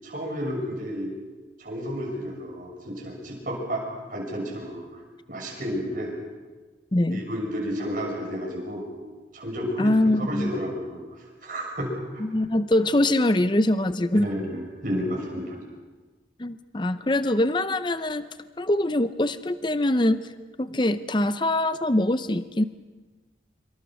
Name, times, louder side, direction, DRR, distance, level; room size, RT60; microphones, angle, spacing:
voice 1, 0.0-1.1 1.6-3.8 4.1-5.0 5.3-6.1 7.1-8.9 9.3-9.9 10.2-12.2 14.1-15.6, equal, 45° right, -1 dB, 6.8 m, -31 dB
voice 2, 6.9-7.2 9.8-10.5 12.2-14.3 16.4-18.3 18.6-20.2 20.6-22.6, left 1 dB, 25° left, 12 dB, 0.6 m, -23 dB
26.5 x 24.5 x 6.3 m, 1.3 s
head